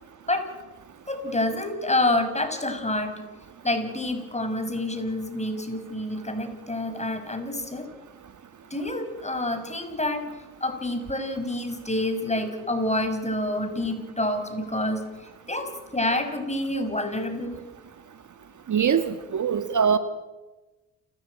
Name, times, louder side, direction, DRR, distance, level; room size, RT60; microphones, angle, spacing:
voice 1, 1.1-3.2 3.6-7.9 8.7-10.3 10.6-17.6, left 1 dB, 15° left, 7 dB, 6.0 m, -28 dB
voice 2, 18.7-20.0, right 7 dB, 45° right, 11 dB, 1.5 m, -22 dB
29.5 x 14.0 x 9.1 m, 1.1 s
hypercardioid pair, 50°, 41 cm